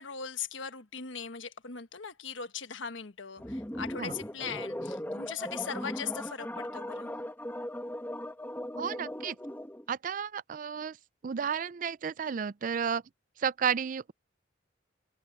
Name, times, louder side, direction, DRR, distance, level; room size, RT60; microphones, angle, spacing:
voice 1, 0.0-7.1, left 6 dB, 80° left, 1.3 m, -39 dB
sound 1, 3.4-9.9, left 1 dB, 10° left, 1.3 m, -38 dB
voice 2, 8.8-9.4 9.9-11.0 11.2-13.0 13.4-14.1, right 7 dB, 45° right, 0.4 m, -32 dB
head